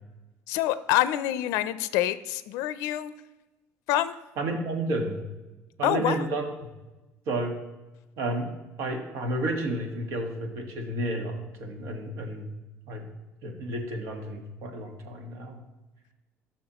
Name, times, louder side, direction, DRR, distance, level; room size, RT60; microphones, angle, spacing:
voice 1, 0.5-3.1 3.9-4.2 5.8-6.3, left 13 dB, 85° left, 14 dB, 0.4 m, -26 dB
voice 2, 4.4-5.2 5.8-6.5 7.3-7.5 8.2-8.5 8.8-12.5 12.9-13.0 13.4-15.6, right 1 dB, 65° right, 4 dB, 1.5 m, -31 dB
14.5 x 6.3 x 3.0 m, 1.1 s
cardioid pair, 160°, 5 cm